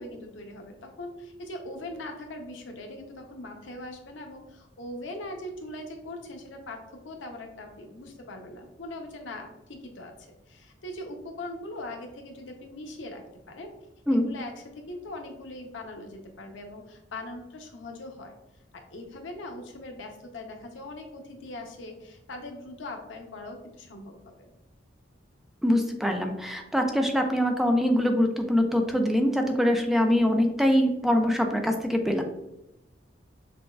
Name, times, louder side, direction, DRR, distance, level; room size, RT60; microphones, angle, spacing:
voice 1, 0.0-13.7 14.1-18.4 18.7-24.5, left 1 dB, 85° left, 3 dB, 0.7 m, -41 dB
voice 2, 25.6-32.2, equal, ahead, 3 dB, 0.3 m, -23 dB
6.0 x 2.3 x 2.3 m, 0.88 s
head